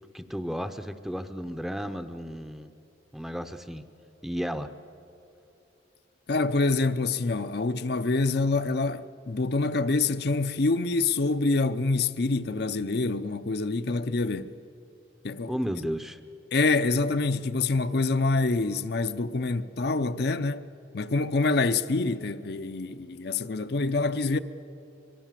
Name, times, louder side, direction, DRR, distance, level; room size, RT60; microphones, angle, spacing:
voice 1, 0.1-2.7 3.1-3.9 4.2-4.7 15.5-16.2, equal, ahead, 0.6 m, -33 dB
voice 2, 6.3-14.5 15.2-15.6 16.5-20.7 20.9-24.4, left 3 dB, 55° left, 0.6 m, -26 dB
23.5 x 22.5 x 7.5 m
head